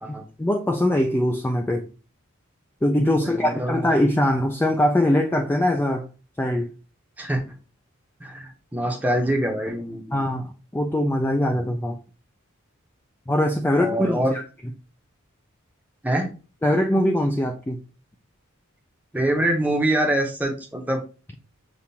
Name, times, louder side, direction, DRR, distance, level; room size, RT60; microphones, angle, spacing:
voice 1, 0.4-1.9 2.8-6.1 6.4-6.7 10.1-12.0 13.3-14.4 16.6-17.8, left 1 dB, 10° left, 0.3 m, -22 dB
voice 2, 3.2-3.9 7.2-7.4 8.2-10.2 13.8-14.3 16.0-16.3 19.1-21.0, right 1 dB, 10° right, 0.7 m, -24 dB
6.8 x 2.4 x 2.8 m
head